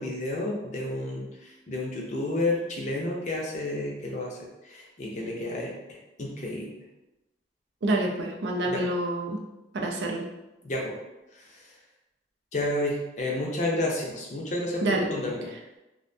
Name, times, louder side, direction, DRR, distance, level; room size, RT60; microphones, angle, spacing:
voice 1, 0.0-6.7 8.7-8.8 10.6-10.9 11.3-11.7 12.5-15.5, left 1 dB, 40° left, -1 dB, 0.5 m, -31 dB
voice 2, 7.8-9.4 9.7-10.2 14.8-15.1, right 2 dB, 80° right, 2 dB, 0.4 m, -27 dB
2.5 x 2.1 x 2.5 m, 0.98 s
head